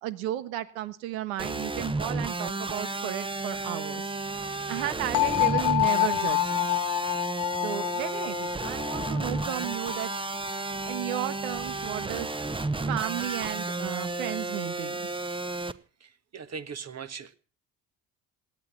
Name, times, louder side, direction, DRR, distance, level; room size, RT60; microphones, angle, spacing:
voice 1, 0.0-4.0 4.4-6.7 7.6-10.1 10.9-12.3 12.9-15.1, right 13 dB, 85° right, 14 dB, 1.4 m, -34 dB
sound 1, 1.4-15.7, right 2 dB, 15° right, 1.0 m, -32 dB
sound 2, 5.1-11.0, left 20 dB, 70° left, 1.1 m, -28 dB
voice 2, 16.0-17.3, right 6 dB, 40° right, 12 dB, 1.6 m, -40 dB
17.5 x 10.5 x 7.2 m, 0.39 s
hypercardioid pair, 65°, 40 cm